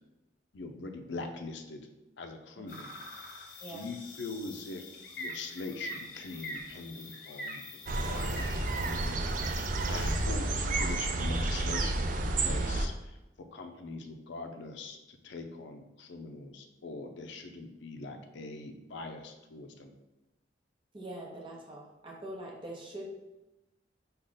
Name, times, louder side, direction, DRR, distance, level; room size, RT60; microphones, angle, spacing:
voice 1, 0.5-1.8 2.2-2.9 3.7-4.8 5.2-9.2 9.9-12.9 13.5-19.9, left 3 dB, 75° left, 6 dB, 0.5 m, -42 dB
sound 1, 2.7-10.3, left 1 dB, 45° left, 1.0 m, -44 dB
sound 2, 7.9-12.9, right 2 dB, 45° right, 0.3 m, -30 dB
voice 2, 20.9-23.1, right 1 dB, 25° right, -1 dB, 0.8 m, -43 dB
5.0 x 2.3 x 3.8 m, 1.0 s
head